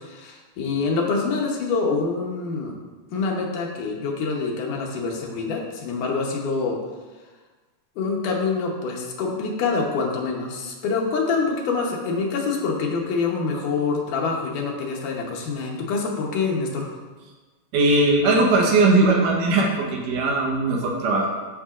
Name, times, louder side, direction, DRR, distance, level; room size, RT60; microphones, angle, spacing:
voice 1, 0.0-2.7 3.1-6.8 8.0-16.9, left 4 dB, 80° left, -1 dB, 2.6 m, -26 dB
voice 2, 17.7-21.3, right 2 dB, 85° right, -1 dB, 2.7 m, -19 dB
8.6 x 7.2 x 2.5 m, 1.3 s
omnidirectional pair, 3.6 m